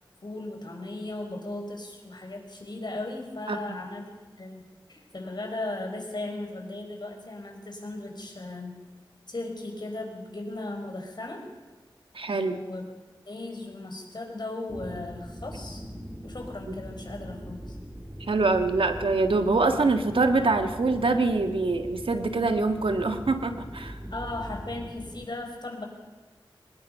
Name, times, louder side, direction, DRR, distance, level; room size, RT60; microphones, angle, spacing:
voice 1, 0.2-8.8 9.3-11.4 12.3-12.9 13.3-15.8 16.2-17.8 24.1-25.9, left 2 dB, 55° left, 2 dB, 5.0 m, -37 dB
voice 2, 12.1-12.6 18.3-24.0, right 3 dB, 90° right, 6 dB, 1.6 m, -24 dB
sound 1, 14.7-25.3, equal, 15° right, 2.2 m, -41 dB
25.0 x 19.5 x 5.5 m, 1.2 s
wide cardioid pair, 75°, 9 cm